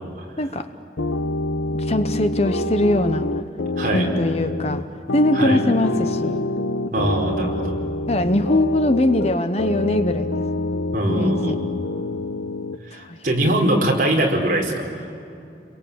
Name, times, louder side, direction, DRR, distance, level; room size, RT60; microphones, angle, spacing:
voice 1, 0.4-0.7 1.7-3.3 3.8-4.8 5.1-6.4 8.1-10.4 11.0-11.6 12.9-13.2, left 1 dB, 35° left, 10 dB, 0.9 m, -21 dB
sound 1, 1.0-12.8, left 2 dB, 85° left, 0.9 m, -26 dB
voice 2, 3.8-4.1 5.3-5.6 6.9-7.7 10.9-11.6 12.9-14.9, right 1 dB, 45° right, -1 dB, 4.5 m, -21 dB
30.0 x 22.5 x 8.7 m, 2.6 s
head